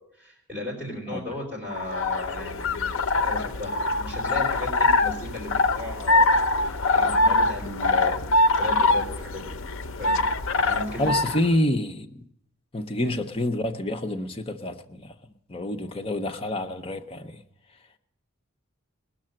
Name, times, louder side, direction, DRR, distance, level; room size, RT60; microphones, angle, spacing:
voice 1, 0.0-9.4 10.0-10.2 10.6-11.1 13.0-13.1, left 2 dB, 10° right, 3.7 m, -36 dB
sound 1, 1.7-11.5, left 2 dB, 60° left, 0.6 m, -23 dB
voice 2, 11.0-12.2 12.7-15.1 15.5-17.4, left 1 dB, 25° left, 0.7 m, -28 dB
20.0 x 6.6 x 7.5 m
head